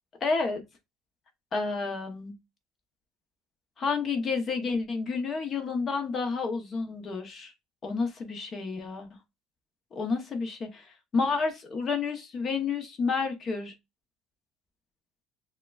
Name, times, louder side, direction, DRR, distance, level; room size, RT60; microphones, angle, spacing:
voice 1, 0.2-0.6 1.5-2.3 3.8-7.5 7.8-9.1 9.9-13.7, left 4 dB, 25° left, 0.8 m, -30 dB
6.4 x 2.2 x 2.3 m
cardioid pair, 165°, 0 cm